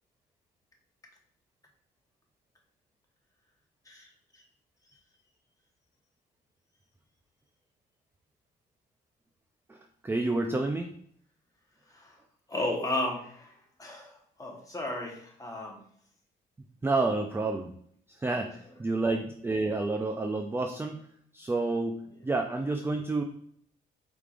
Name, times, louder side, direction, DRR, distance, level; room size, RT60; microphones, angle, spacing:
voice 1, 10.0-10.9 16.8-17.7 18.2-21.1 21.3-23.2, right 3 dB, 10° right, 3 dB, 0.3 m, -29 dB
voice 2, 12.5-13.5 13.8-14.1 14.4-15.8 18.3-18.4, left 1 dB, 15° left, 0 dB, 1.1 m, -33 dB
4.6 x 3.4 x 2.5 m, 0.63 s
cardioid pair, 90°, 20 cm